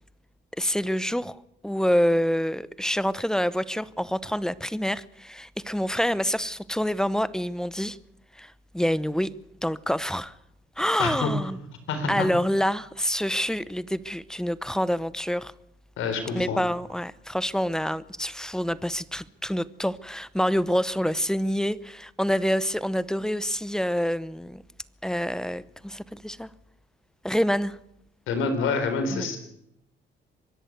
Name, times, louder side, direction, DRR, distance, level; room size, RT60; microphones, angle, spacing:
voice 1, 0.6-1.4 1.6-8.0 8.4-9.3 9.6-10.3 10.8-11.6 12.1-15.5 16.3-24.6 25.0-26.5 27.2-27.8 29.1-29.3, equal, 5° left, 0.8 m, -27 dB
voice 2, 11.0-11.3 11.9-12.3 16.0-16.6 28.3-29.4, left 4 dB, 85° left, 4.2 m, -27 dB
24.5 x 11.0 x 9.5 m
cardioid pair, 90°, 20 cm